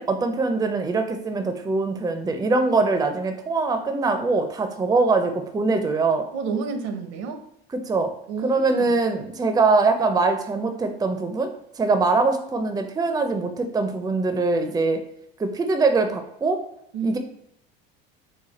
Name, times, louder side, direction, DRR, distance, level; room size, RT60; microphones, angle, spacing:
voice 1, 0.0-6.3 7.8-8.1 8.4-11.5 11.8-15.0 15.4-16.6 17.0-17.2, right 3 dB, 10° right, 7 dB, 0.5 m, -22 dB
voice 2, 6.3-7.4 8.3-9.0 16.9-17.2, right 4 dB, 60° right, 7 dB, 0.8 m, -30 dB
4.1 x 2.3 x 4.0 m, 0.78 s
hypercardioid pair, 80°, 30 cm